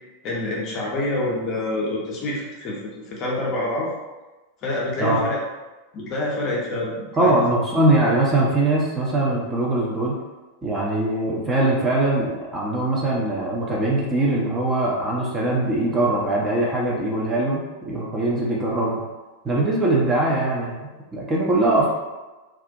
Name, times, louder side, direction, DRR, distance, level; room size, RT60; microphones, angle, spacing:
voice 1, 0.2-2.8 3.1-3.9 4.6-5.4 5.9-7.4, left 1 dB, 35° left, -3 dB, 0.6 m, -26 dB
voice 2, 7.2-10.2 10.6-19.0 19.4-21.9, right 2 dB, 15° right, -4 dB, 0.5 m, -22 dB
2.3 x 2.1 x 2.6 m, 1.2 s
figure-of-eight pair, 90°, 0 cm